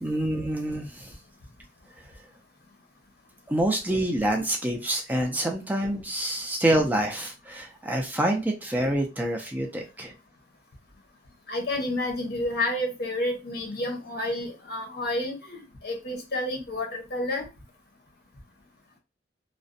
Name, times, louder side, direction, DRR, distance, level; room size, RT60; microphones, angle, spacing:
voice 1, 0.0-1.1 3.5-10.1, right 1 dB, 10° right, 2 dB, 0.3 m, -27 dB
voice 2, 11.5-17.5, left 1 dB, 60° left, 2 dB, 0.8 m, -30 dB
2.5 x 2.0 x 2.5 m, 0.28 s
head